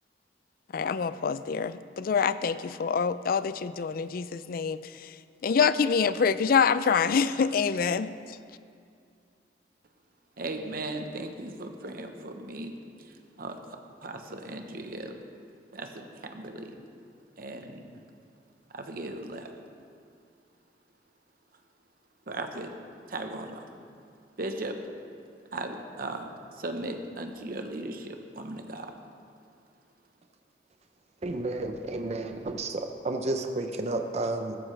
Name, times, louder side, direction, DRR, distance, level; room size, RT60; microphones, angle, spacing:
voice 1, 0.7-5.1 5.4-8.1, left 6 dB, 55° left, 14 dB, 0.4 m, -26 dB
voice 2, 10.4-12.7 13.0-15.2 15.7-16.8 17.4-18.0 18.7-19.5 22.3-22.7 23.1-23.7 24.4-24.8 25.5-29.0, right 2 dB, 55° right, 5 dB, 1.0 m, -37 dB
voice 3, 31.2-34.6, right 2 dB, 40° right, 6 dB, 0.6 m, -31 dB
15.0 x 13.5 x 3.3 m, 2.3 s
head